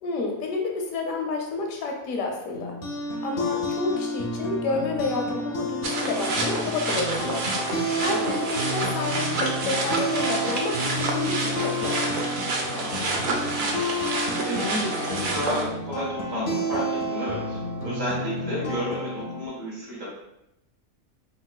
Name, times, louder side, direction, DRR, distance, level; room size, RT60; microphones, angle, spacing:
voice 1, 0.0-2.8 3.2-7.5 8.0-12.0, left 3 dB, 80° left, 1 dB, 1.0 m, -29 dB
sound 1, 2.5-19.5, equal, 55° left, 0.6 m, -30 dB
sound 2, 5.8-15.6, right 2 dB, 90° right, 0.4 m, -29 dB
voice 2, 7.8-8.4 12.7-20.1, equal, 65° right, -6 dB, 1.7 m, -32 dB
3.7 x 2.6 x 2.2 m, 0.84 s
omnidirectional pair, 1.5 m